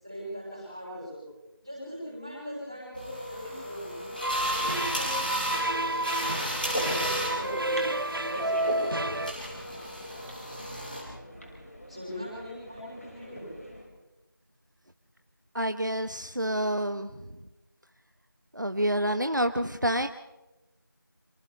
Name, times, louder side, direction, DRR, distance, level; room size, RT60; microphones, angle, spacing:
voice 1, 0.0-1.2 1.6-4.1 4.4-7.8 8.2-8.6 11.9-13.4, equal, 10° right, -6 dB, 7.2 m, -40 dB
sound 1, 2.9-11.0, equal, 25° left, 6.3 m, -35 dB
sound 2, 4.2-9.3, right 1 dB, 75° right, 0.6 m, -30 dB
sound 3, 5.6-13.9, equal, 45° left, 5.5 m, -40 dB
voice 2, 15.5-17.3 18.5-20.1, equal, 60° right, 8 dB, 1.0 m, -28 dB
28.5 x 27.0 x 3.4 m, 1.0 s
figure-of-eight pair, 180°, 12 cm